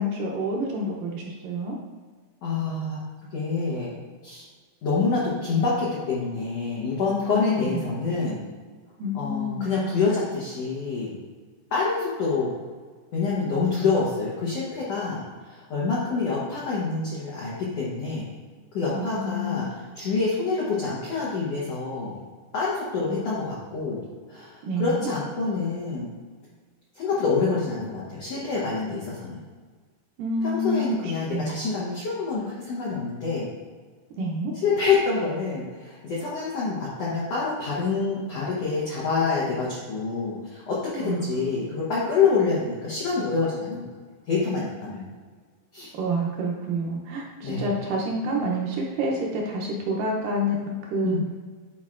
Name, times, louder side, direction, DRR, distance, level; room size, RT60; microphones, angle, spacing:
voice 1, 0.0-1.8 7.3-7.8 9.0-9.6 18.9-19.8 24.6-25.1 30.2-31.5 34.2-34.5 41.0-41.5 45.9-51.2, equal, 75° right, -1 dB, 2.0 m, -28 dB
voice 2, 2.4-3.0 3.3-3.9 4.2-4.4 4.8-8.4 9.1-11.1 11.7-12.5 13.1-18.3 18.7-22.2 22.5-24.0 24.3-26.1 26.9-29.4 30.4-33.5 34.5-43.8 44.3-45.0 45.7-45.9 47.4-47.7 51.0-51.2, left 4 dB, 90° left, -6 dB, 1.4 m, -27 dB
10.0 x 4.4 x 2.5 m, 1.5 s
omnidirectional pair, 4.5 m